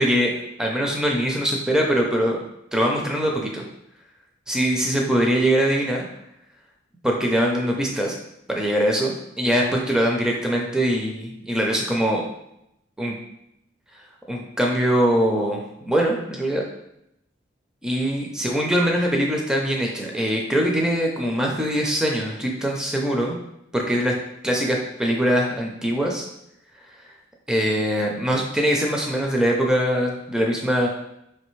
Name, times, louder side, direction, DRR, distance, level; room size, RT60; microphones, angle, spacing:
voice 1, 0.0-2.4 2.7-3.6 4.5-6.0 7.0-8.2 8.5-12.3 13.0-13.2 14.3-16.6 17.8-23.4 23.7-24.1 24.4-26.3 27.5-30.9, equal, 5° right, -1 dB, 0.4 m, -22 dB
4.7 x 3.2 x 3.1 m, 0.81 s
head